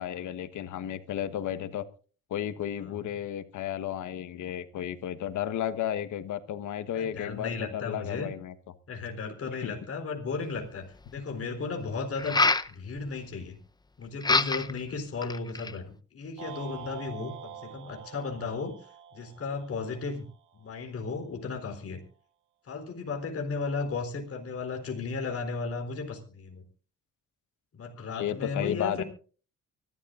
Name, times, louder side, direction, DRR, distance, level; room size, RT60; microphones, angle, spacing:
voice 1, 0.0-1.8 2.3-8.5 9.6-9.7 28.1-29.0, left 10 dB, 75° left, 12 dB, 1.3 m, -33 dB
voice 2, 6.9-8.3 8.9-12.4 12.7-13.6 14.0-18.8 19.1-20.3 20.5-22.0 22.6-26.6 27.7-29.1, left 4 dB, 50° left, 3 dB, 3.9 m, -35 dB
sound 1, 10.5-10.6 12.2-12.7 14.2-14.8 15.2-15.8, left 3 dB, 15° left, 0.8 m, -25 dB
sound 2, 16.4-20.7, right 9 dB, 80° right, 2.6 m, -46 dB
25.5 x 13.0 x 2.6 m, 0.39 s
cardioid pair, 90°, 30 cm